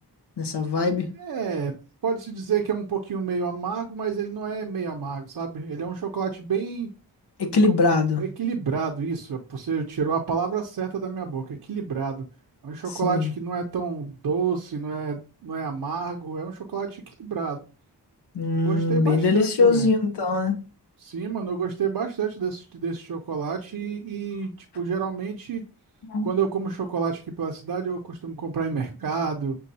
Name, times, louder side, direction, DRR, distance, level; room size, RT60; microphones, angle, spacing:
voice 1, 0.4-1.1 7.4-8.3 12.9-13.3 18.3-20.6 26.0-26.3, left 3 dB, 70° left, 0.8 m, -22 dB
voice 2, 1.2-1.8 2.0-6.9 7.7-7.8 8.2-12.2 12.6-17.6 18.6-19.9 21.0-25.6 26.2-29.6, right 6 dB, 60° right, 0.6 m, -29 dB
6.2 x 2.3 x 2.7 m
cardioid pair, 50°, 42 cm